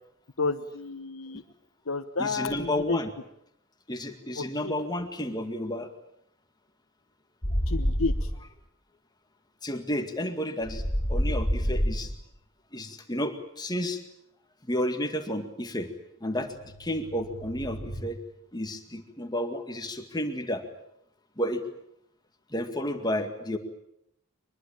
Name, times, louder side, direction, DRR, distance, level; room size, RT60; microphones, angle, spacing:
voice 1, 0.4-1.4 1.9-3.0 4.4-4.7 7.7-8.3, left 3 dB, 85° left, 3 dB, 1.1 m, -31 dB
voice 2, 2.2-3.1 3.9-5.9 9.6-10.8 11.1-12.1 12.7-14.0 14.6-15.9 16.2-16.5 16.8-18.2 18.5-20.6 21.4-21.6 22.5-23.6, left 1 dB, 20° left, 6 dB, 2.1 m, -31 dB
sound 1, 7.4-8.4 10.6-12.2 16.4-18.0, equal, 35° left, 5.8 m, -29 dB
24.5 x 21.0 x 8.8 m, 0.75 s
head